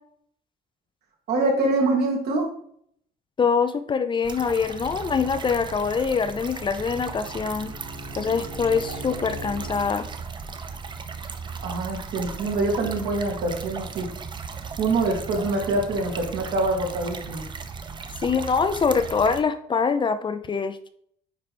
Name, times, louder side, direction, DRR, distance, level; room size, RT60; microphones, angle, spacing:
voice 1, 1.3-2.5 11.6-14.1 14.8-17.4, right 2 dB, 70° right, -1 dB, 2.3 m, -25 dB
voice 2, 3.4-7.7 8.2-10.1 18.2-20.9, left 5 dB, 30° left, 10 dB, 0.5 m, -24 dB
sound 1, 4.2-19.4, right 5 dB, 25° right, 0.6 m, -36 dB
Bowed string instrument, 6.1-10.0, left 1 dB, 50° right, 3.1 m, -41 dB
9.6 x 3.2 x 4.3 m, 0.65 s
cardioid pair, 110°, 17 cm